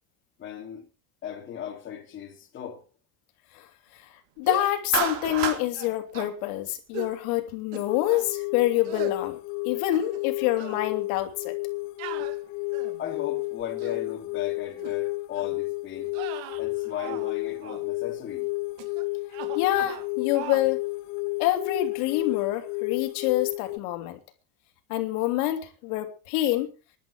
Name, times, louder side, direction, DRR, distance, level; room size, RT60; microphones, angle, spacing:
voice 1, 0.4-0.9 1.2-2.8 13.0-16.1 16.6-18.5, left 10 dB, 30° left, 3.0 m, -37 dB
voice 2, 4.4-9.4 9.6-11.6 19.5-20.8 21.4-24.2 24.9-26.7, left 14 dB, 85° left, 2.8 m, -26 dB
sound 1, 4.4-4.8 5.2-5.5 5.7-6.3 6.9-7.2 7.7-8.3 8.8-9.2 9.7-10.3 10.6-10.8 12.0-13.0 13.6-14.0 14.8-15.0 15.3-15.6 16.1-17.3 17.6-17.8 18.8-19.0 19.3-20.1 20.3-20.7, right 11 dB, 65° right, 2.3 m, -39 dB
Clapping, 4.9-5.6, right 7 dB, 40° right, 3.7 m, -27 dB
sound 2, 7.9-23.8, left 25 dB, 65° left, 0.7 m, -32 dB
19.0 x 11.5 x 4.7 m
cardioid pair, 175°, 42 cm